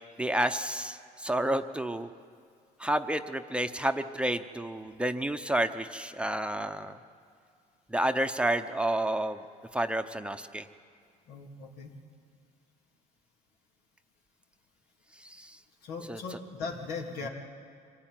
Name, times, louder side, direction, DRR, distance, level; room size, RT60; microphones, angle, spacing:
voice 1, 0.2-2.1 2.8-7.0 7.9-9.4 9.7-10.7 15.2-15.6 16.1-16.2, right 1 dB, 5° right, 7 dB, 0.8 m, -30 dB
voice 2, 11.3-11.9 15.8-17.3, left 4 dB, 85° left, 1 dB, 3.1 m, -38 dB
25.0 x 17.0 x 9.2 m, 2.2 s
cardioid pair, 110°, 17 cm